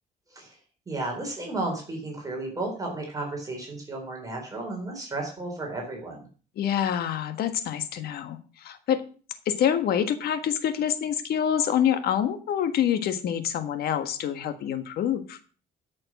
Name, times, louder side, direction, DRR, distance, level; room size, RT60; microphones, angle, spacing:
voice 1, 0.9-6.3, right 2 dB, 20° right, 0 dB, 4.2 m, -33 dB
voice 2, 6.6-9.0 9.4-15.4, left 9 dB, 65° left, 10 dB, 1.6 m, -26 dB
13.0 x 6.5 x 6.0 m, 0.39 s
cardioid pair, 110°, 17 cm